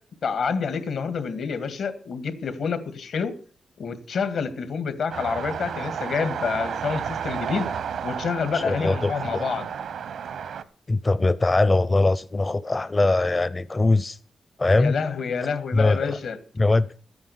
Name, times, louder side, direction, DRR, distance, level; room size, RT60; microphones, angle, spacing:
voice 1, 0.2-3.3 3.8-7.7 8.0-9.7 14.7-16.4, left 5 dB, 75° left, 2.0 m, -28 dB
sound 1, 5.1-10.6, right 7 dB, 85° right, 1.1 m, -32 dB
voice 2, 8.5-9.4 10.9-14.2 14.6-15.0 15.7-16.2 16.6-16.9, left 2 dB, 25° left, 0.5 m, -21 dB
13.0 x 9.5 x 6.7 m
cardioid pair, 100°, 0 cm